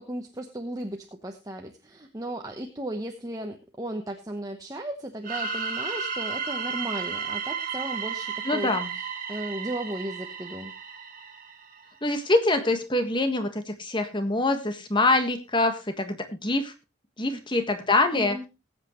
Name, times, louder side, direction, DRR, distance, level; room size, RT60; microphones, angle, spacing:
voice 1, 0.0-8.7 9.3-10.7 17.3-17.4 18.1-18.5, right 1 dB, 15° right, 3 dB, 1.0 m, -35 dB
sound 1, 5.2-11.9, right 6 dB, 40° right, 2.3 m, -33 dB
voice 2, 8.4-8.9 12.0-16.7 17.2-18.4, left 2 dB, 25° left, 7 dB, 1.5 m, -25 dB
20.0 x 8.3 x 3.1 m, 0.27 s
head